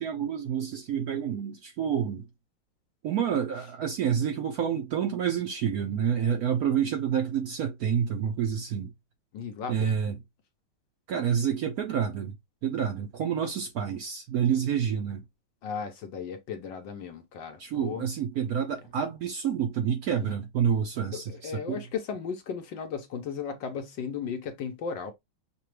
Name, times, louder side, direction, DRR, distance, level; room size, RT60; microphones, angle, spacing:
voice 1, 0.0-2.3 3.0-8.9 9.7-10.2 11.1-12.3 12.6-15.2 17.6-21.8, right 8 dB, 85° right, 0.8 m, -28 dB
voice 2, 9.3-9.9 15.6-18.0 20.2-20.3 21.1-25.1, left 6 dB, 70° left, 1.3 m, -35 dB
5.8 x 2.3 x 3.1 m
omnidirectional pair, 2.3 m